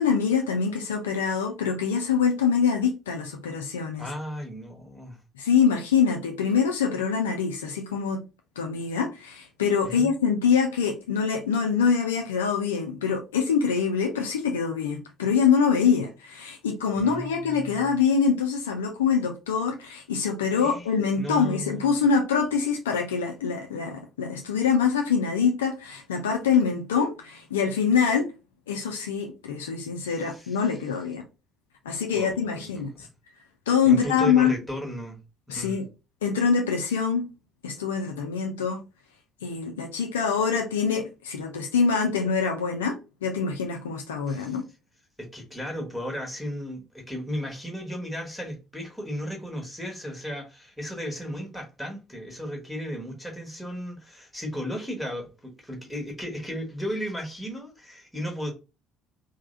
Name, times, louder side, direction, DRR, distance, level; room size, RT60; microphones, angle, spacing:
voice 1, 0.0-4.1 5.4-8.2 8.6-28.3 28.7-31.2 31.9-33.1 33.7-34.5 35.5-35.8 36.2-37.3 37.6-38.8 39.4-44.6, left 6 dB, 75° left, 0.4 m, -24 dB
voice 2, 4.0-5.2 9.8-10.1 16.9-18.0 20.6-20.9 21.2-22.0 30.0-30.7 32.1-33.1 33.9-35.2 35.5-35.8 44.3-44.6 45.2-58.5, equal, 5° left, 1.2 m, -35 dB
3.2 x 2.1 x 2.5 m
figure-of-eight pair, 50°, 0 cm